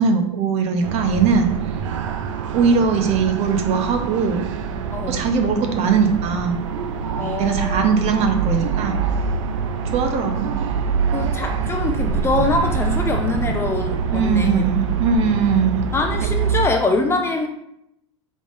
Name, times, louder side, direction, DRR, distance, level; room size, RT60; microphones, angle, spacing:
voice 1, 0.0-1.8 2.5-4.5 5.1-6.6 7.4-9.0 9.9-10.5 14.1-15.8 16.2-16.3, right 5 dB, 45° right, 5 dB, 0.8 m, -20 dB
sound 1, 0.8-16.7, right 6 dB, 80° right, 0.4 m, -25 dB
voice 2, 4.9-5.2 7.2-7.9 11.1-14.6 15.9-17.5, left 3 dB, 15° left, 3 dB, 0.5 m, -23 dB
5.8 x 3.6 x 2.5 m, 0.79 s
supercardioid pair, 120°, 16 cm